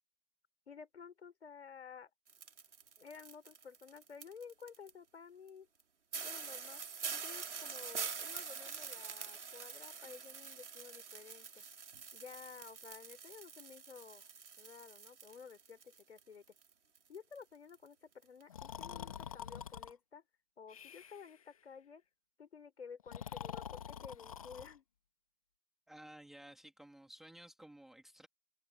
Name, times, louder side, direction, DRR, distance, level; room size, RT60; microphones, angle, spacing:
voice 1, 0.7-2.1 3.0-5.7 6.2-6.8 7.1-11.6 12.1-14.2 14.6-16.4 17.1-20.2 20.6-22.0 22.4-24.8, left 6 dB, 45° left, 4.0 m, -53 dB
sound 1, 2.3-4.9 5.5-5.6 5.8-5.9 6.1-16.2 16.5-17.4 17.7-17.9 18.2-18.4, right 6 dB, 50° right, 3.9 m, -46 dB
Breathing, 18.5-19.9 20.7-21.4 23.0-24.8, left 8 dB, 25° left, 1.8 m, -46 dB
voice 2, 25.9-28.3, right 1 dB, ahead, 2.0 m, -55 dB
figure-of-eight pair, 165°, 45 cm